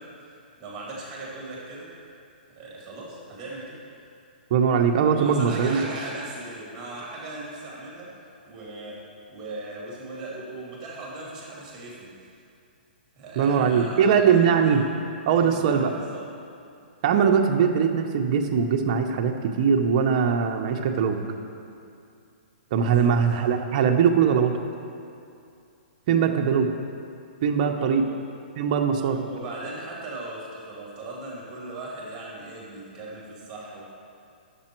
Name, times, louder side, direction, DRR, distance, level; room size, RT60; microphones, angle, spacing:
voice 1, 0.0-1.9 2.5-3.8 5.1-8.1 8.5-12.3 13.1-14.8 15.3-16.3 22.9-23.2 27.8-28.2 29.0-33.8, right 2 dB, 15° right, -4 dB, 2.2 m, -38 dB
voice 2, 4.5-5.8 13.4-14.8 15.3-15.9 17.0-21.2 22.7-24.6 26.1-26.7 27.4-28.1 28.6-29.2, right 7 dB, 40° right, 4 dB, 0.7 m, -21 dB
9.7 x 6.9 x 4.5 m, 2.5 s
hypercardioid pair, 160°, 6 cm